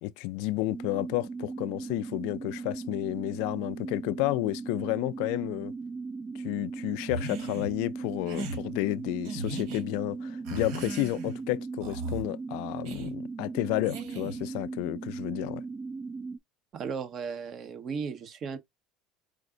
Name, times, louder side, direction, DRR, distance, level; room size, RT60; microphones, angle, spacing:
voice 1, 0.0-5.7 6.3-15.6, left 19 dB, 75° left, 0.4 m, -31 dB
sound 1, 0.7-16.4, right 4 dB, 25° right, 0.4 m, -38 dB
sound 2, 7.1-7.7 8.3-8.6 9.2-9.8 10.4-11.4 11.8-12.2 12.9-13.1 13.8-14.5, right 3 dB, 75° right, 2.1 m, -37 dB
voice 2, 16.7-18.6, right 6 dB, 45° right, 1.0 m, -35 dB
5.0 x 2.5 x 3.7 m
supercardioid pair, 110°, 0 cm